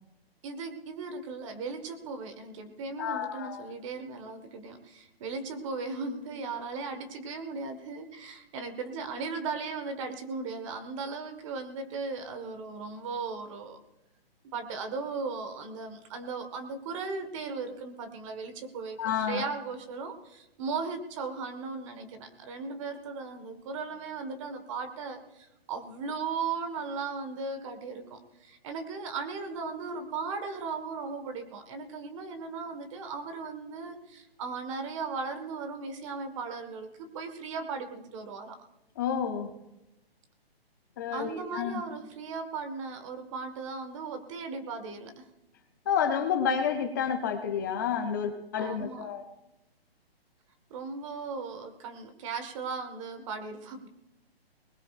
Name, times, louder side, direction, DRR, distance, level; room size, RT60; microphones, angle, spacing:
voice 1, 0.4-13.8 14.5-38.6 41.1-45.3 48.6-49.1 50.7-53.9, right 4 dB, 30° right, 7 dB, 1.4 m, -37 dB
voice 2, 3.0-3.6 19.0-19.5 39.0-39.5 41.0-41.8 45.9-49.2, left 7 dB, 20° left, 6 dB, 0.6 m, -30 dB
21.5 x 20.0 x 2.4 m, 0.91 s
hypercardioid pair, 155°, 31 cm